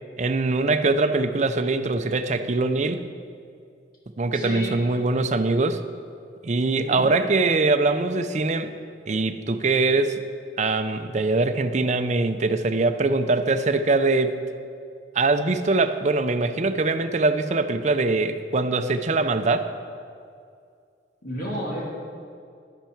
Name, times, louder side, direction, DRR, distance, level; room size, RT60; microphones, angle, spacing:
voice 1, 0.2-3.0 4.2-5.8 6.4-8.7 9.1-10.2 10.6-14.4 15.1-19.7, right 3 dB, 40° right, 9 dB, 0.5 m, -22 dB
voice 2, 4.3-4.8 6.6-7.1 21.2-21.8, equal, 55° left, -4 dB, 2.4 m, -32 dB
11.5 x 10.5 x 4.5 m, 2.3 s
head